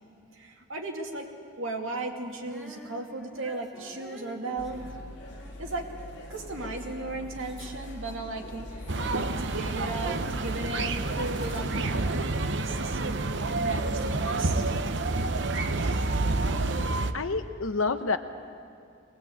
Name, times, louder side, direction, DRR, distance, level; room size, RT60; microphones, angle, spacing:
voice 1, 0.3-1.3 1.6-4.8 5.6-5.9 6.3-13.2 13.6-14.6, right 2 dB, 80° right, 1 dB, 2.5 m, -36 dB
Female singing, 2.4-8.6, equal, ahead, 1.7 m, -51 dB
sound 1, 4.6-12.0, left 1 dB, 55° left, 2.6 m, -42 dB
sound 2, 8.9-17.1, right 2 dB, 60° right, 0.9 m, -28 dB
voice 2, 17.1-18.2, left 4 dB, 85° left, 9 dB, 0.8 m, -28 dB
22.5 x 19.5 x 8.5 m, 2.4 s
head